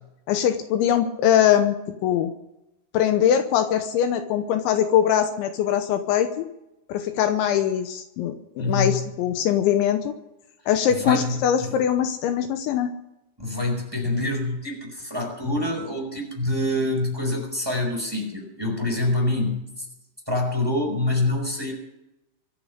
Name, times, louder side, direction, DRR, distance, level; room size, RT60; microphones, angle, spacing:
voice 1, 0.3-1.8 2.0-2.3 2.9-6.5 6.9-10.1 10.7-12.9, left 9 dB, 80° left, 8 dB, 3.2 m, -22 dB
voice 2, 8.6-9.1 10.9-11.8 13.4-19.8 20.3-21.7, left 2 dB, 5° right, 1 dB, 4.1 m, -26 dB
24.5 x 8.6 x 6.8 m, 0.90 s
omnidirectional pair, 5.5 m